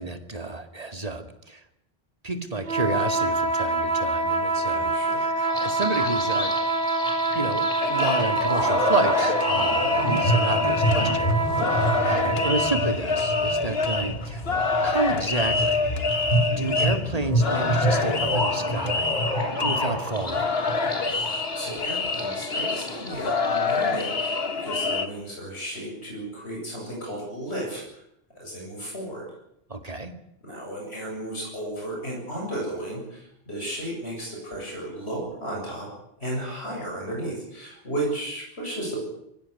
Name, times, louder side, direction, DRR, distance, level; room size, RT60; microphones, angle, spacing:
voice 1, 0.0-1.6 2.2-6.6 7.3-11.3 11.6-14.4 14.8-20.4 29.7-30.2, right 2 dB, 35° right, 6 dB, 2.3 m, -31 dB
sound 1, 2.6-12.8, right 2 dB, 65° right, 2.9 m, -26 dB
voice 2, 4.7-5.2 9.6-9.9 11.8-12.0 20.7-27.8 28.4-29.3 30.4-35.9 36.2-39.0, right 1 dB, 85° left, -2 dB, 7.9 m, -34 dB
sound 2, 5.4-24.5, equal, 45° left, 5.7 m, -29 dB
sound 3, 7.8-25.1, left 4 dB, 70° left, 1.8 m, -27 dB
23.5 x 16.5 x 9.8 m, 0.80 s
omnidirectional pair, 1.1 m